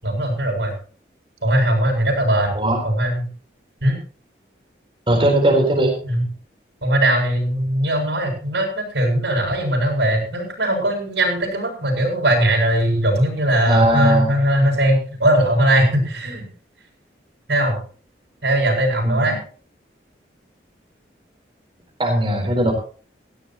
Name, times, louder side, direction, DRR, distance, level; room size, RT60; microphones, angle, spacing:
voice 1, 0.0-0.7 1.4-2.6 2.8-3.3 3.8-4.0 6.0-6.2 6.8-16.5 17.5-17.8 18.4-19.4, right 1 dB, 75° right, 0 dB, 7.7 m, -19 dB
voice 2, 5.1-5.9 13.7-14.3 19.0-19.4 22.0-22.7, right 1 dB, 30° right, 0 dB, 4.1 m, -18 dB
18.0 x 16.0 x 3.0 m, 0.41 s
head